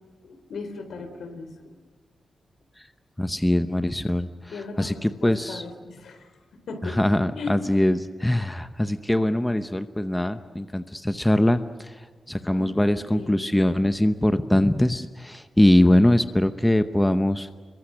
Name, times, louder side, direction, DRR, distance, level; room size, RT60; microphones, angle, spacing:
voice 1, 0.2-1.8 4.5-6.3 6.7-7.6 12.5-13.6, left 4 dB, 75° left, 7 dB, 4.1 m, -38 dB
voice 2, 3.2-4.3 4.8-5.6 6.8-11.9 12.3-17.5, left 1 dB, 5° left, 10 dB, 0.8 m, -22 dB
28.0 x 23.0 x 6.5 m, 1.5 s
wide cardioid pair, 165°, 0 cm